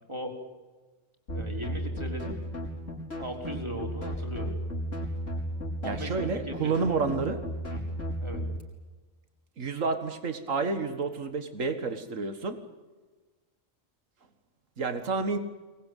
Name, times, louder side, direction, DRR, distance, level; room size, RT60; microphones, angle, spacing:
voice 1, 0.1-0.4 1.3-2.4 3.2-4.5 5.8-7.1 7.7-7.9 8.2-8.5, equal, 20° right, 3 dB, 3.8 m, -38 dB
sound 1, 1.3-8.6, equal, 75° left, 4.9 m, -34 dB
voice 2, 5.8-7.4 9.6-12.6 14.8-15.4, right 4 dB, 85° right, 9 dB, 2.1 m, -30 dB
23.0 x 20.0 x 9.3 m, 1.3 s
omnidirectional pair, 1.3 m